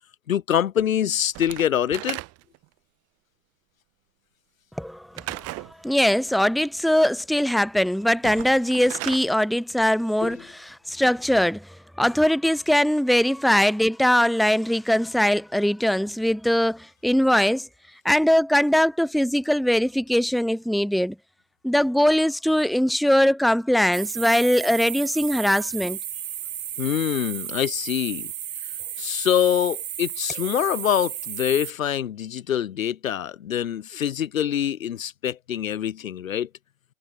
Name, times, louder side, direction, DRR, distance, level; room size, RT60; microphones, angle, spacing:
voice 1, 0.3-2.2 10.2-10.3 26.8-28.3 29.0-36.5, left 10 dB, 65° left, 4.3 m, -25 dB
Slam / Wood, 1.3-2.6 5.1-5.7 8.1-9.3, right 21 dB, 35° right, 6.9 m, -35 dB
voice 2, 4.8-5.1 5.3-5.4 5.8-11.7 12.0-17.7 18.0-21.1 21.6-26.0, equal, ahead, 2.8 m, -21 dB
sound 1, 23.9-31.7, right 10 dB, 65° right, 3.7 m, -33 dB
hypercardioid pair, 120°, 43 cm